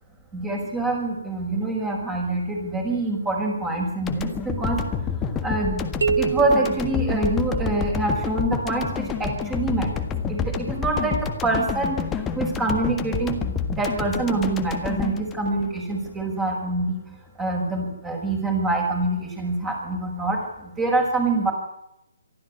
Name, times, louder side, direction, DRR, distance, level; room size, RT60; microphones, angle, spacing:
voice 1, 0.3-4.8 5.4-5.8 6.2-17.0 17.4-21.5, right 2 dB, 10° right, 2 dB, 6.0 m, -25 dB
sound 1, 4.1-16.3, left 6 dB, 15° left, 1.6 m, -29 dB
sound 2, 6.0-8.0, right 6 dB, 60° right, 1.3 m, -27 dB
24.0 x 13.5 x 9.7 m, 0.84 s
figure-of-eight pair, 140°, 0 cm